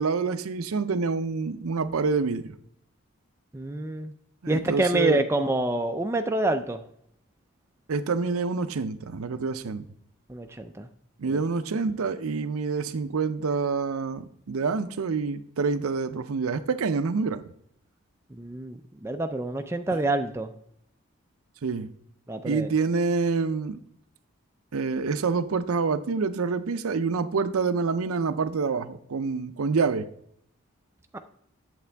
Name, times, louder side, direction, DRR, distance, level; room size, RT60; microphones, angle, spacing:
voice 1, 0.0-2.5 4.4-5.2 7.9-9.8 11.2-17.4 21.6-21.9 22.4-23.8 24.7-30.1, right 4 dB, 90° right, 12 dB, 0.5 m, -27 dB
voice 2, 3.5-4.1 4.5-6.8 10.3-10.9 11.3-11.4 18.3-20.5 22.3-22.7 31.1-31.2, right 2 dB, 10° right, 6 dB, 0.4 m, -27 dB
8.4 x 7.4 x 3.4 m, 0.70 s
head